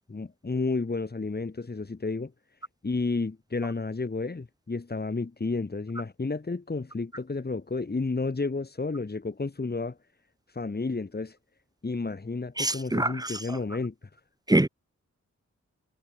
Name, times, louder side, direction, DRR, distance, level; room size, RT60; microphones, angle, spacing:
voice 1, 0.1-2.3 2.8-10.0 10.6-11.4 11.8-13.9, left 3 dB, 35° left, 3.8 m, -31 dB
voice 2, 12.6-13.4 14.5-14.7, right 1 dB, 15° right, 2.1 m, -24 dB
wide cardioid pair, 110°, 29 cm